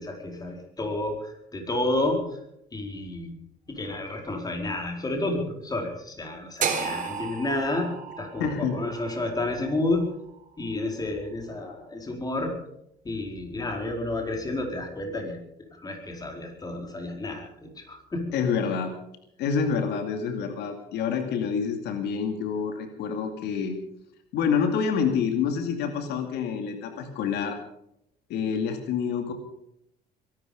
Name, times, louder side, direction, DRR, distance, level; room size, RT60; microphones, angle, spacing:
voice 1, 0.0-2.4 2.7-3.4 3.7-7.9 8.2-10.0 10.6-12.5 13.0-15.4 15.7-18.4, left 2 dB, 20° left, 3 dB, 4.5 m, -30 dB
sound 1, 6.6-10.7, right 6 dB, 50° right, 4.0 m, -33 dB
voice 2, 8.4-8.8 18.3-18.9 19.4-23.7 24.3-27.6 28.3-29.3, left 6 dB, 85° left, 6 dB, 2.4 m, -27 dB
22.5 x 12.0 x 5.2 m, 0.78 s
cardioid pair, 110°, 17 cm